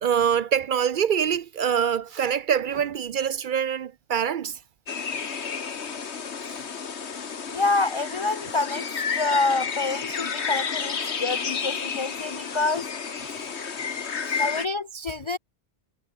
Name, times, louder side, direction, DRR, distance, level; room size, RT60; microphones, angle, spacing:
voice 1, 0.0-4.6 14.2-14.4, right 8 dB, 60° right, 0.6 m, -25 dB
sound 1, 4.9-14.7, left 6 dB, 85° left, 1.7 m, -31 dB
voice 2, 7.5-8.9 9.2-12.9 13.3-13.5 14.3-15.4, left 3 dB, 50° left, 0.3 m, -27 dB
omnidirectional pair, 1.1 m